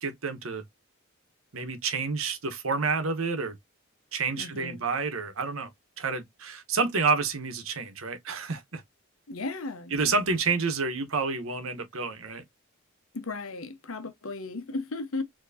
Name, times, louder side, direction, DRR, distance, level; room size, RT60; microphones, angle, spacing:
voice 1, 0.0-0.6 1.5-3.6 4.1-5.7 6.0-8.8 9.9-12.4, right 4 dB, 80° right, 1.0 m, -29 dB
voice 2, 4.3-4.8 9.3-10.2 13.1-15.2, left 3 dB, 80° left, 0.9 m, -35 dB
4.6 x 2.9 x 2.6 m
head